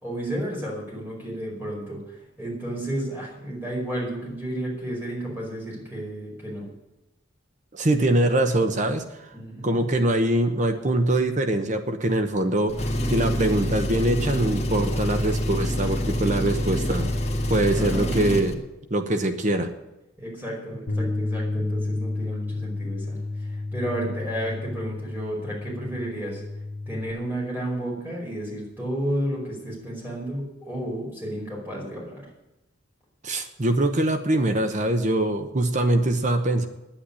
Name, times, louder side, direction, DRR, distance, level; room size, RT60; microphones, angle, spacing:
voice 1, 0.0-6.7 9.3-9.8 17.7-18.1 20.2-26.4 26.9-32.3, right 1 dB, 10° right, -3 dB, 5.1 m, -32 dB
voice 2, 7.7-9.3 9.6-17.1 17.5-18.6 18.9-19.7 33.2-36.7, right 1 dB, 40° right, 7 dB, 0.9 m, -23 dB
Engine, 12.7-18.5, equal, 30° left, 1.6 m, -26 dB
Bass guitar, 20.9-27.1, left 2 dB, 65° left, 1.4 m, -31 dB
9.9 x 9.0 x 9.9 m, 0.98 s
head